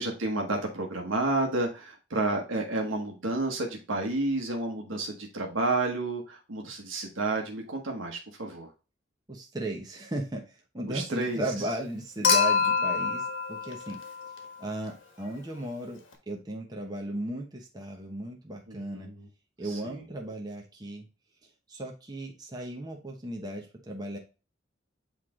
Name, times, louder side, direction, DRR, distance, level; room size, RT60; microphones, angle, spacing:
voice 1, 0.0-8.7 10.9-11.4 18.7-19.3 19.6-20.0, right 2 dB, 80° right, 1 dB, 1.2 m, -31 dB
voice 2, 9.3-14.0 14.6-19.1 19.6-21.1 21.7-24.2, right 1 dB, 20° right, 0 dB, 0.9 m, -36 dB
Human group actions / Chink clink / Liquid, 12.2-14.6 16.1-16.2, left 5 dB, 80° left, 1.5 m, -26 dB
8.3 x 3.3 x 3.7 m, 0.32 s
head